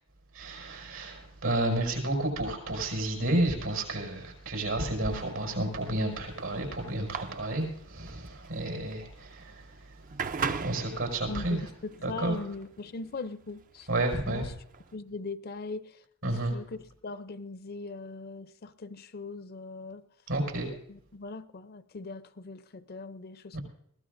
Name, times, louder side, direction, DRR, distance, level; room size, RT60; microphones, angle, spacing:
voice 1, 0.3-10.0 10.6-11.7 12.0-12.4 13.9-14.5 16.2-16.5 20.3-20.7 23.5-23.6, right 1 dB, 85° right, 5.7 m, -31 dB
sound 1, 5.1-15.0, right 5 dB, 40° right, 0.5 m, -39 dB
voice 2, 11.3-13.9 14.3-14.4 14.9-15.9 16.5-16.8 17.0-20.0 20.9-23.6, left 3 dB, 45° left, 0.5 m, -40 dB
21.5 x 16.0 x 2.6 m
head